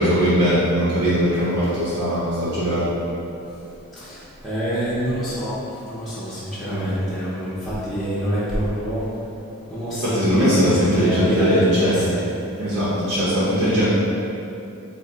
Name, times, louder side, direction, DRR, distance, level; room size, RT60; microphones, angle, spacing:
voice 1, 0.0-2.9 10.0-12.0 12.6-13.9, equal, 70° right, -11 dB, 0.7 m, -20 dB
voice 2, 4.4-5.5 5.9-9.0 9.7-12.2, equal, ahead, -12 dB, 0.5 m, -26 dB
3.5 x 2.1 x 3.7 m, 2.7 s
head